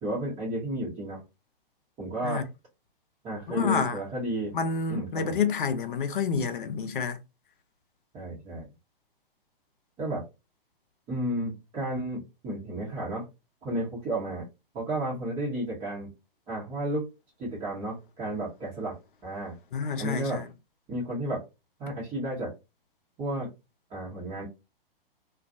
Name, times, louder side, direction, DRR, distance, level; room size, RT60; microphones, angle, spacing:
voice 1, 0.0-1.2 2.0-2.5 3.2-4.5 4.9-5.4 8.1-8.7 10.0-10.2 11.1-13.3 13.6-14.5 14.7-16.1 16.5-17.0 17.4-19.0 19.2-19.6 20.0-20.4 20.9-21.4 21.8-22.5 23.2-23.5 23.9-24.5, right 1 dB, 20° right, 0.9 m, -32 dB
voice 2, 3.5-4.0 4.5-7.2 19.7-20.5, left 5 dB, 60° left, 0.6 m, -28 dB
2.4 x 2.3 x 2.6 m
figure-of-eight pair, 115°, 29 cm